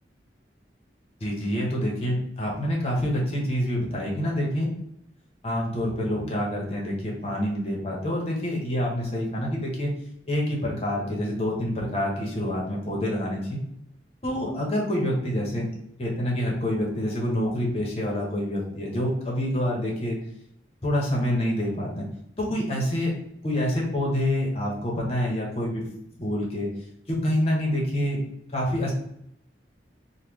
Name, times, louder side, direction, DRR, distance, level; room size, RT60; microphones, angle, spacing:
voice 1, 1.2-4.7 5.4-9.9 10.2-13.6 14.2-15.7 16.0-20.2 20.8-22.1 22.4-23.1 23.4-25.8 26.2-26.7 27.1-28.2 28.5-28.9, equal, 35° left, -3 dB, 0.9 m, -27 dB
3.1 x 2.2 x 3.5 m, 0.77 s
head